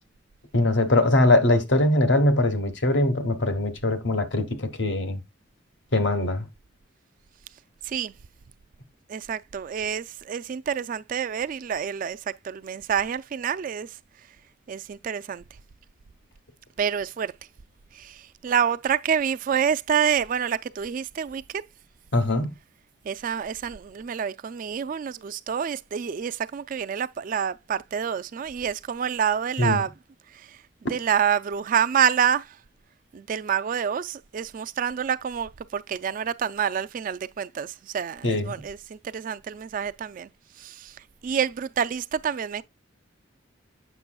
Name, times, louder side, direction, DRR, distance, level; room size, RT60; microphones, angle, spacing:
voice 1, 0.5-5.2 5.9-6.4 22.1-22.5 29.6-29.8 38.2-38.5, left 2 dB, 65° left, 1.1 m, -22 dB
voice 2, 7.8-8.1 9.1-14.0 14.7-15.4 16.8-17.3 17.9-21.6 23.0-29.9 30.3-30.6 30.9-32.6 33.1-40.3 40.6-42.6, right 8 dB, 45° right, 0.3 m, -27 dB
8.0 x 6.1 x 2.3 m
head